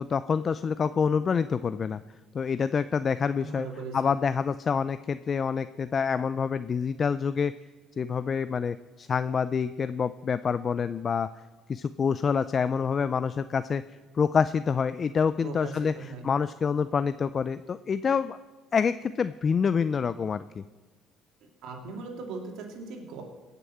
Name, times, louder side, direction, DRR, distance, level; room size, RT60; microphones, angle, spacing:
voice 1, 0.0-2.0 2.3-3.7 3.9-7.5 8.0-11.3 11.7-13.8 14.1-18.4 18.7-20.6, left 6 dB, 40° left, 14 dB, 0.4 m, -27 dB
voice 2, 3.4-4.0 15.4-16.2 21.6-23.2, right 4 dB, 75° right, 2 dB, 2.8 m, -39 dB
17.5 x 6.8 x 7.8 m, 1.3 s
cardioid pair, 100°, 0 cm